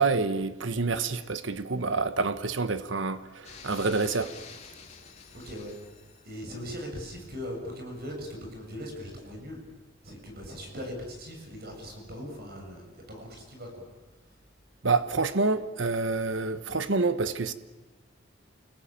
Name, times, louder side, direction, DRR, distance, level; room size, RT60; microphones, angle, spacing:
voice 1, 0.0-4.3 14.8-17.5, right 4 dB, 70° right, 1.2 m, -27 dB
sound 1, 3.4-6.6, left 5 dB, 35° left, 3.6 m, -48 dB
voice 2, 5.3-5.7 6.2-9.6 10.0-13.8, equal, 55° right, 7.3 m, -40 dB
29.0 x 21.0 x 8.9 m
head